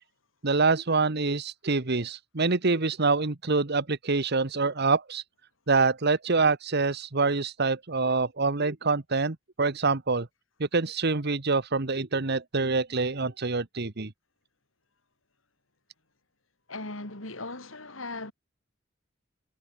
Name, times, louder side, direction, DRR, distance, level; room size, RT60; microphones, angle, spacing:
voice 1, 0.4-5.2 5.7-10.3 10.6-14.1, right 4 dB, 55° right, 1.3 m, -26 dB
voice 2, 16.7-18.3, left 2 dB, 85° left, 5.2 m, -38 dB
head